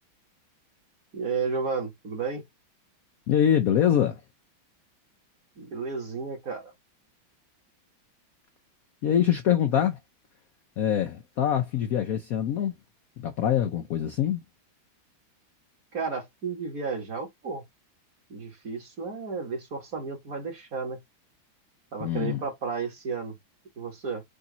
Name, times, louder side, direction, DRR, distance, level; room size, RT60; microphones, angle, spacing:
voice 1, 1.1-2.5 5.6-6.7 15.9-17.6 18.3-21.0 21.9-23.4 23.8-24.2, right 5 dB, 45° right, 1.8 m, -32 dB
voice 2, 3.3-4.2 9.0-10.0 10.8-12.7 13.2-14.4 22.0-22.4, left 9 dB, 75° left, 0.8 m, -24 dB
5.2 x 2.7 x 3.9 m
omnidirectional pair, 2.2 m